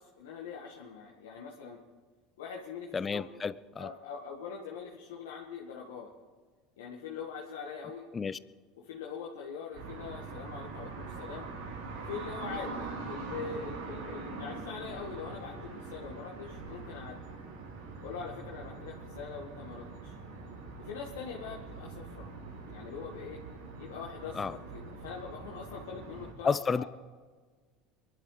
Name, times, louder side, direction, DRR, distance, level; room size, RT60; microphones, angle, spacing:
voice 1, 0.0-1.8 2.4-3.3 3.8-6.1 6.8-8.1 8.8-11.5 12.0-17.2 18.0-20.1 20.8-22.3 22.7-23.4 23.8-26.8, left 6 dB, 85° left, 1.8 m, -43 dB
voice 2, 2.9-3.9 8.1-8.4 24.3-24.5 26.4-26.8, left 5 dB, 25° left, 0.6 m, -31 dB
sound 1, 9.7-26.3, right 4 dB, 85° right, 3.7 m, -43 dB
23.0 x 11.5 x 5.0 m
hypercardioid pair, 90°, 0 cm